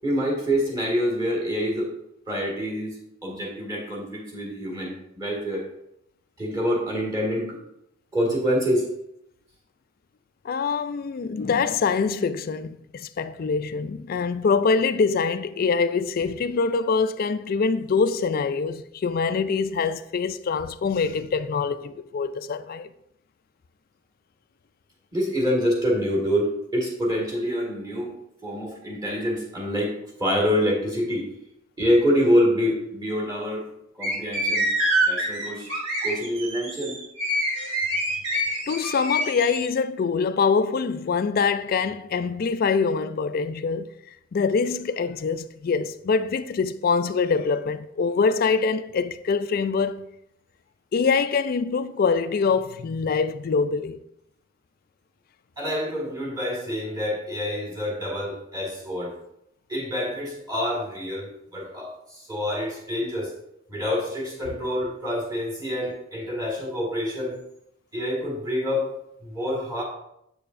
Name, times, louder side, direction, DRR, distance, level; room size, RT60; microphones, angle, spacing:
voice 1, 0.0-1.9 2.3-5.7 6.4-7.5 8.1-8.9 25.1-28.1 28.4-29.9 30.2-31.3 31.8-33.7 34.0-34.7 35.1-35.7 36.0-37.0 55.6-59.1 59.7-63.3 63.7-67.4 67.9-68.9 69.2-69.8, equal, 20° right, 1.9 m, -26 dB
voice 2, 10.4-22.9 38.7-43.9 44.3-50.1 50.9-54.0, left 5 dB, 45° left, 0.3 m, -24 dB
sound 1, 34.0-39.6, right 1 dB, 65° right, 2.1 m, -26 dB
8.1 x 6.7 x 2.5 m
head